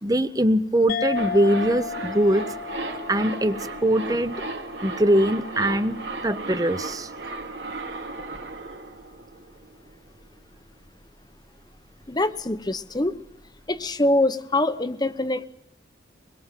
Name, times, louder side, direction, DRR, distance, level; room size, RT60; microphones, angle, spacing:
voice 1, 0.0-2.5 3.1-4.4 4.8-6.0 6.2-7.1, right 1 dB, 20° right, 13 dB, 1.0 m, -22 dB
sound 1, 0.9-5.8, left 6 dB, 50° left, 1.0 m, -34 dB
sound 2, 1.2-10.0 10.2-10.3, right 2 dB, 75° right, 2.7 m, -35 dB
voice 2, 12.1-13.1 13.7-15.5, left 1 dB, 20° left, 12 dB, 1.0 m, -24 dB
24.0 x 21.5 x 7.6 m, 0.74 s
head